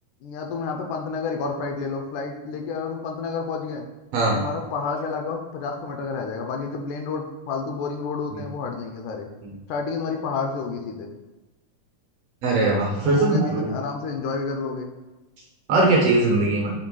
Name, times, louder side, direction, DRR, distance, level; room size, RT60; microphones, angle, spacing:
voice 1, 0.2-3.8 4.3-9.3 9.7-11.1 13.0-14.9, left 4 dB, 80° left, 3 dB, 2.1 m, -30 dB
voice 2, 12.4-13.7 15.7-16.7, right 2 dB, 65° right, -3 dB, 1.7 m, -20 dB
6.6 x 3.2 x 4.7 m, 1.1 s
omnidirectional pair, 3.6 m